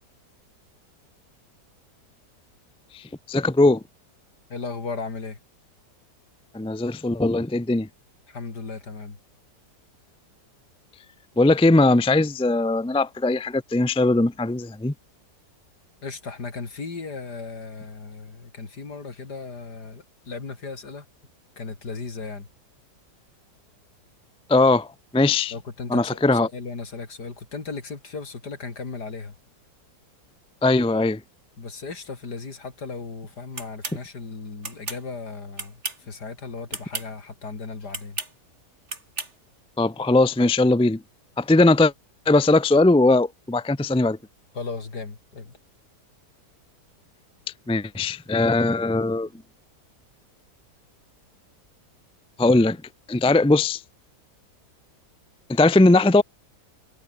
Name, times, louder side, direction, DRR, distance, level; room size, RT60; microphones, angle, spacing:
voice 1, 2.9-3.8 6.5-7.9 11.4-14.9 24.5-25.5 25.9-26.5 30.6-31.2 39.8-41.0 41.4-41.9 42.3-44.2 47.7-49.3 52.4-52.8 53.1-53.8 55.5-56.2, left 2 dB, 5° left, 0.5 m, -19 dB
voice 2, 4.5-5.4 8.3-9.2 16.0-21.1 21.6-22.5 25.5-29.4 31.6-38.2 44.5-45.6, left 4 dB, 70° left, 4.0 m, -36 dB
sound 1, 33.6-34.0 34.6-35.0 35.6-36.1 36.7-37.1 37.9-38.3 38.9-39.3, right 3 dB, 40° right, 4.2 m, -33 dB
omnidirectional pair, 1.8 m